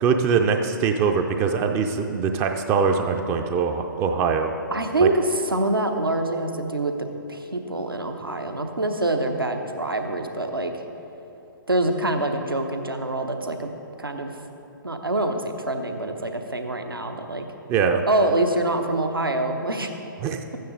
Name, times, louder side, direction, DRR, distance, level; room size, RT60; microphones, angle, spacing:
voice 1, 0.0-4.5 5.0-5.1 17.7-18.0 20.2-20.4, right 6 dB, 20° right, 5 dB, 0.4 m, -22 dB
voice 2, 4.7-6.9 7.3-10.7 11.7-13.7 14.0-14.4 14.8-17.5 18.1-20.0, right 2 dB, 80° right, 5 dB, 1.0 m, -25 dB
12.5 x 9.3 x 3.9 m, 3.0 s
figure-of-eight pair, 120°, 12 cm